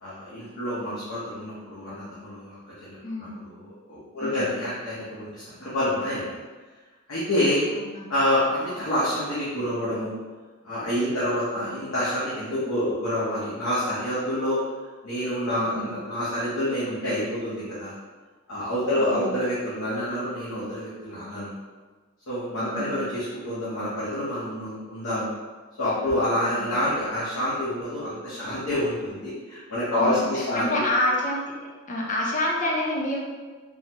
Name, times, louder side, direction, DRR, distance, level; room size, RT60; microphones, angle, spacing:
voice 1, 0.0-6.3 7.1-7.6 8.1-10.2 10.6-14.6 15.0-17.9 18.5-21.5 22.3-25.3 25.8-30.8, left 1 dB, 85° left, -10 dB, 0.8 m, -27 dB
voice 2, 3.0-3.4 4.2-4.5 7.7-8.0 11.5-11.7 15.5-16.0 18.9-19.4 22.6-23.0 26.5-26.8 30.0-31.4 31.9-33.2, left 1 dB, 40° left, -2 dB, 0.6 m, -28 dB
3.8 x 2.1 x 2.8 m, 1.4 s
head